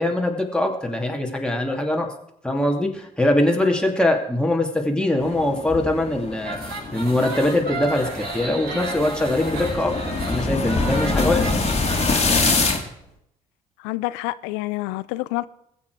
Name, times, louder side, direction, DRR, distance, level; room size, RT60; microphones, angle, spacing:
voice 1, 0.0-2.1 2.4-6.6 6.9-9.9 10.3-11.6, left 1 dB, 5° left, 2.5 m, -22 dB
sound 1, 5.2-12.8, left 3 dB, 35° left, 2.4 m, -25 dB
sound 2, 6.4-12.8, right 2 dB, 60° right, 6.8 m, -33 dB
voice 2, 13.8-15.5, left 19 dB, 75° left, 0.5 m, -27 dB
21.0 x 7.5 x 4.7 m
hypercardioid pair, 50°, 18 cm